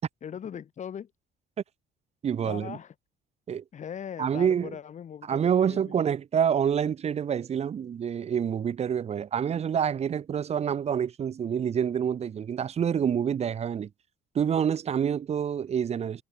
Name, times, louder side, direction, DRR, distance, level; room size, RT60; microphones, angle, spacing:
voice 1, 0.2-1.1 2.4-2.9 3.7-6.0, left 8 dB, 45° left, 2.6 m, -40 dB
voice 2, 2.2-2.8 3.5-3.6 4.2-4.8 5.3-13.9 14.3-16.2, right 8 dB, 40° right, 0.9 m, -27 dB
cardioid pair, 110°, 17 cm